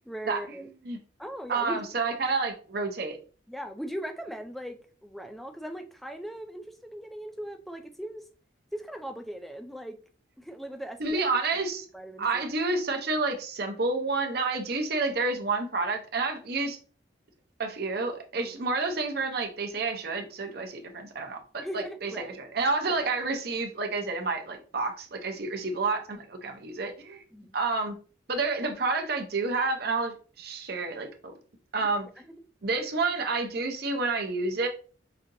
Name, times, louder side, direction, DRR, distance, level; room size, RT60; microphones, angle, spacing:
voice 1, 0.1-0.7 1.2-1.9 3.5-8.3 8.7-10.0 10.4-11.2 11.9-12.3 18.3-18.5 21.6-22.4 22.9-23.0 25.3-25.4 27.3-27.5 31.8-31.9 32.2-32.3, equal, ahead, 6 dB, 0.3 m, -39 dB
voice 2, 1.5-3.2 11.0-11.9 12.2-16.8 17.6-27.2 27.5-27.9 28.3-31.3 31.7-32.1 32.6-34.7, right 3 dB, 55° right, 4 dB, 0.7 m, -29 dB
5.0 x 2.8 x 2.6 m, 0.39 s
head